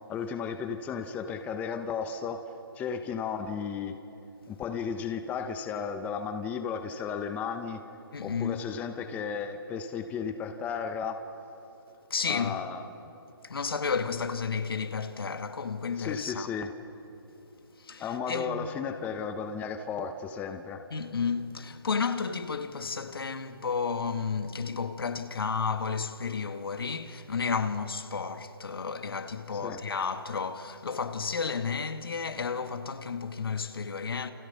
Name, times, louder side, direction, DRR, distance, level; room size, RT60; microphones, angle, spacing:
voice 1, 0.1-2.5 2.7-4.0 4.5-7.8 8.2-11.2 12.2-12.9 16.0-16.7 18.0-20.8 29.5-29.8, left 6 dB, 10° left, 1.0 m, -34 dB
voice 2, 8.1-8.6 12.1-12.6 13.4-16.5 17.8-18.7 20.9-34.3, left 5 dB, 70° left, 1.9 m, -32 dB
29.5 x 29.0 x 5.8 m
hypercardioid pair, 150°, 13 cm